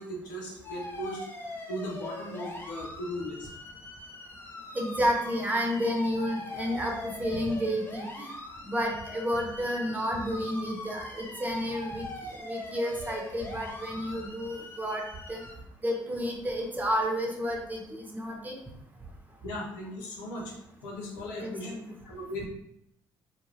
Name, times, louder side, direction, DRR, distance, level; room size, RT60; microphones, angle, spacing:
voice 1, 0.0-3.5 19.4-20.5 20.8-21.7 22.0-22.5, equal, 90° left, -1 dB, 0.5 m, -37 dB
sound 1, 0.6-15.5, left 1 dB, 20° left, 0.6 m, -42 dB
voice 2, 4.7-8.3 8.6-12.1 12.4-15.0 15.3-15.4 15.8-18.5 21.4-21.9, equal, 15° right, 0 dB, 0.8 m, -31 dB
2.2 x 2.1 x 3.2 m, 0.77 s
hypercardioid pair, 50°, 10 cm